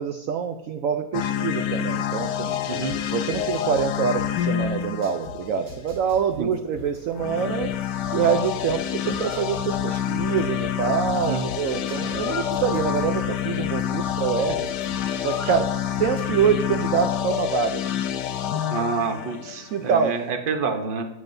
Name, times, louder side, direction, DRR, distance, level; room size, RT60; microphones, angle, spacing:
voice 1, 0.0-2.6 3.1-7.7 8.1-14.7 15.2-17.8 19.7-20.1, right 7 dB, 65° right, 6 dB, 0.9 m, -25 dB
sound 1, 1.1-6.0 7.1-20.2, left 10 dB, 85° left, 1.2 m, -27 dB
sound 2, 2.9-5.3 5.7-8.8 9.1-12.2 12.5-15.6 15.9-16.5, left 1 dB, 80° right, 3.7 m, -42 dB
sound 3, 6.8-17.5, left 5 dB, 60° left, 1.3 m, -44 dB
voice 2, 18.7-21.1, right 5 dB, 40° right, 5 dB, 1.0 m, -28 dB
16.0 x 8.9 x 2.7 m, 0.96 s
omnidirectional pair, 1.8 m